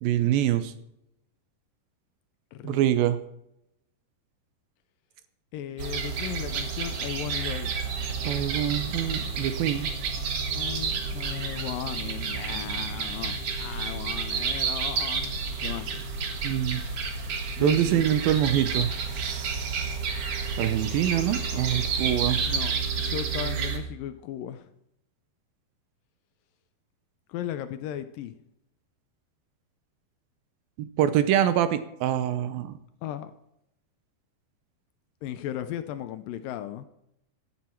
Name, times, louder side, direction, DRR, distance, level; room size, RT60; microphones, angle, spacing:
voice 1, 0.0-0.7 2.6-3.2 8.3-9.9 16.4-16.8 17.6-20.0 20.6-22.4 30.8-32.8, right 11 dB, 75° right, 12 dB, 2.4 m, -25 dB
voice 2, 2.5-3.0 5.5-7.8 10.5-16.1 17.6-18.1 22.5-24.7 27.3-28.4 33.0-33.3 35.2-36.9, left 11 dB, 75° left, 11 dB, 2.1 m, -36 dB
sound 1, 5.8-23.8, right 5 dB, 55° right, 1.9 m, -30 dB
15.5 x 11.5 x 4.5 m, 0.80 s
omnidirectional pair, 4.4 m